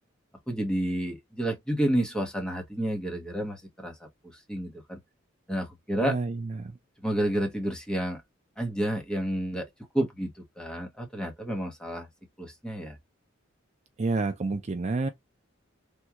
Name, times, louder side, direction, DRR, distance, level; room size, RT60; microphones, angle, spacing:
voice 1, 0.5-5.0 5.5-6.2 7.0-8.2 8.6-9.7 9.9-12.1 12.4-13.0, right 1 dB, 5° left, 1.0 m, -30 dB
voice 2, 6.0-6.8 14.0-15.1, right 3 dB, 35° right, 0.4 m, -29 dB
3.6 x 2.3 x 2.8 m
head